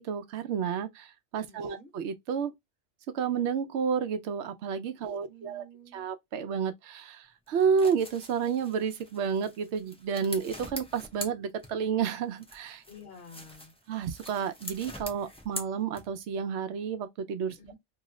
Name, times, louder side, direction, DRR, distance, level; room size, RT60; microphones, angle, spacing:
voice 1, 0.0-2.5 3.1-5.6 5.9-12.8 13.9-17.6, right 6 dB, 90° right, 0.9 m, -31 dB
voice 2, 1.5-1.9 5.0-6.1 12.9-13.7 17.5-17.7, left 2 dB, 65° left, 1.2 m, -51 dB
sound 1, 7.5-12.0 12.4-16.4, equal, 10° left, 0.4 m, -44 dB
2.9 x 2.0 x 3.6 m
omnidirectional pair, 1.1 m